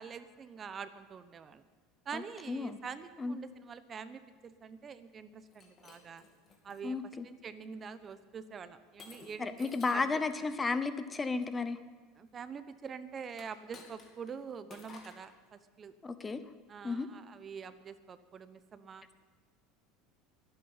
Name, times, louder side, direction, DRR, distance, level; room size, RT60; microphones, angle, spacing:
voice 1, 0.0-1.6 2.1-6.2 6.6-7.0 7.2-10.1 12.2-15.9 16.7-19.0, right 6 dB, 30° right, 13 dB, 0.8 m, -45 dB
voice 2, 2.5-2.8 3.2-3.4 6.8-7.3 9.4-11.8 16.0-16.4 16.8-17.1, left 4 dB, 15° left, 12 dB, 0.8 m, -33 dB
Shatter, 5.4-6.8 7.5-7.8 9.0-10.2 13.3-14.3 14.7-15.3, left 4 dB, 35° left, 2.6 m, -54 dB
22.5 x 8.7 x 5.6 m, 1.4 s
supercardioid pair, 120°, 0 cm